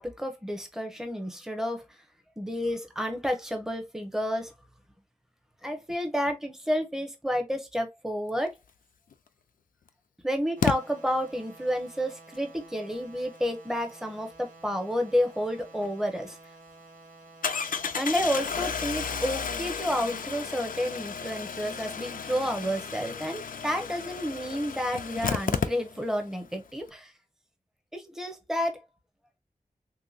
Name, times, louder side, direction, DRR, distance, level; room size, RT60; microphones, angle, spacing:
voice 1, 0.0-1.8 2.4-4.5 5.6-8.5 10.2-16.4 17.9-27.1 27.9-28.8, equal, 5° right, 0.8 m, -30 dB
Engine starting, 9.1-9.2 10.6-10.8 15.8-15.9 16.3-16.4 17.4-26.2 26.5-26.6 26.8-26.9, left 6 dB, 80° left, 0.4 m, -33 dB
sound 1, 10.6-19.6, right 3 dB, 75° right, 1.7 m, -52 dB
3.4 x 2.8 x 2.4 m
wide cardioid pair, 75°, 14 cm